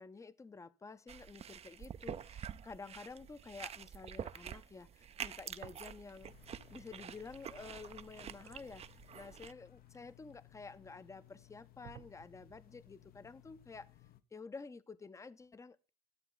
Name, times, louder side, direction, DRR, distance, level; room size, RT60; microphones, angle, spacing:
voice 1, 0.0-6.3 6.7-13.9 14.3-15.9, left 4 dB, 20° left, 0.6 m, -51 dB
sound 1, 1.1-9.5, right 8 dB, 40° right, 0.5 m, -48 dB
sound 2, 5.6-6.4 6.7-10.6 11.2-11.3 11.8-12.7, right 12 dB, 70° right, 0.9 m, -59 dB
sound 3, 6.2-14.2, left 14 dB, 60° left, 0.8 m, -62 dB
12.5 x 7.8 x 4.0 m
cardioid pair, 110°, 17 cm